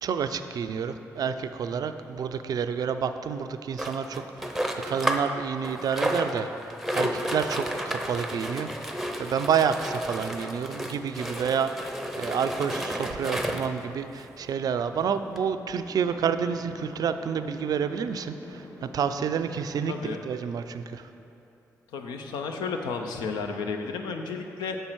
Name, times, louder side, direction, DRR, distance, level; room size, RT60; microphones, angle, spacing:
voice 1, 0.0-6.5 6.9-21.1, right 7 dB, 60° right, 10 dB, 0.3 m, -29 dB
sound 1, 3.8-5.3 5.6-13.8 14.5-14.6 14.8-14.9 15.4-15.5, equal, ahead, 0.7 m, -32 dB
sound 2, 14.0-20.6, left 2 dB, 50° left, 0.9 m, -48 dB
voice 2, 19.9-20.2 21.9-24.8, left 4 dB, 75° left, 4 dB, 0.5 m, -32 dB
6.6 x 5.5 x 4.5 m, 2.9 s
hypercardioid pair, 40°, 7 cm